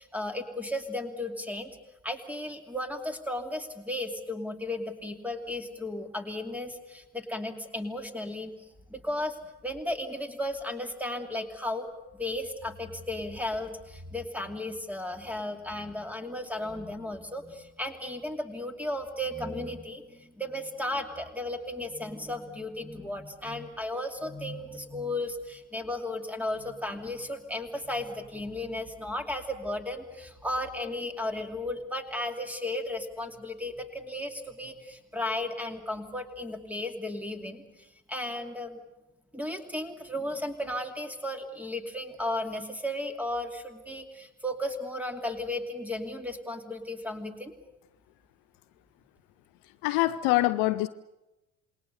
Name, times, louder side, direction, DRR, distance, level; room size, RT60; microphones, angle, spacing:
voice 1, 0.0-1.8 2.0-38.8 39.3-47.5, left 1 dB, 5° right, 6 dB, 2.7 m, -35 dB
voice 2, 49.8-50.9, left 18 dB, 50° left, 14 dB, 0.7 m, -24 dB
27.5 x 21.0 x 6.8 m, 1.0 s
figure-of-eight pair, 55°, 42 cm